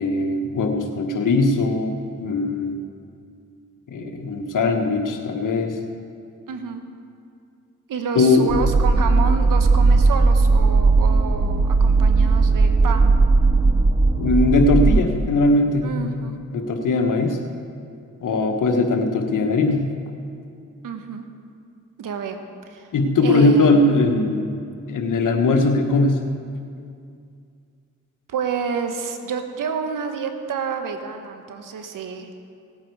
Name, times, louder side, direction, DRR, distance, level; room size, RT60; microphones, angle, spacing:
voice 1, 0.0-2.8 3.9-5.8 8.1-8.5 14.2-16.2 16.5-17.4 18.2-19.9 22.9-24.4 24.9-26.2, left 2 dB, 75° left, 4 dB, 1.4 m, -20 dB
voice 2, 6.5-6.8 7.9-13.1 15.8-16.3 20.8-21.2 22.0-22.9 23.2-23.8 28.3-32.3, right 6 dB, 80° right, 6 dB, 1.2 m, -29 dB
sound 1, 8.5-15.0, right 3 dB, 15° right, 0.6 m, -17 dB
18.0 x 8.9 x 4.8 m, 2.4 s
supercardioid pair, 45°, 32 cm